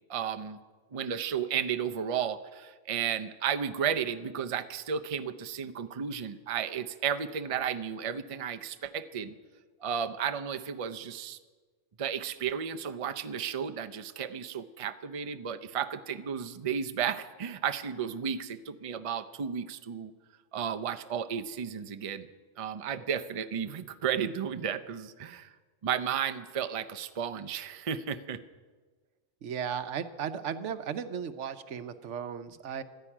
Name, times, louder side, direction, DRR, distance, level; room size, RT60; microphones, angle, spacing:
voice 1, 0.1-0.6 0.9-9.3 9.8-11.4 12.0-20.1 20.5-22.3 22.6-25.5 25.8-28.4, right 8 dB, 35° right, 9 dB, 0.6 m, -33 dB
voice 2, 29.4-32.8, right 8 dB, 80° right, 12 dB, 1.1 m, -35 dB
13.0 x 10.5 x 9.9 m, 1.4 s
omnidirectional pair, 1.2 m